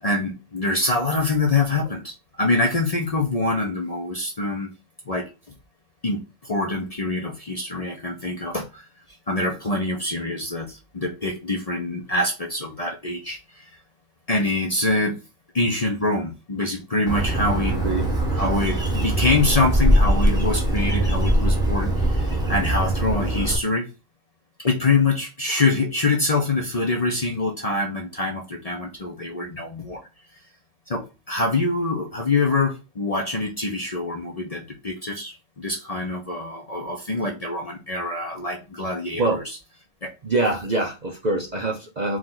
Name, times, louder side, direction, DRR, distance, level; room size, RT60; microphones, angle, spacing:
voice 1, 0.0-4.7 5.1-5.2 6.0-8.8 9.3-13.7 14.3-15.2 15.5-17.9 18.3-23.9 24.6-30.0 30.9-39.6 40.0-40.1, left 2 dB, 35° left, 0.6 m, -25 dB
Bird, 17.1-23.6, right 1 dB, 5° right, 1.0 m, -22 dB
voice 2, 40.2-42.2, right 2 dB, 45° right, 0.6 m, -24 dB
4.6 x 2.5 x 3.8 m
omnidirectional pair, 1.4 m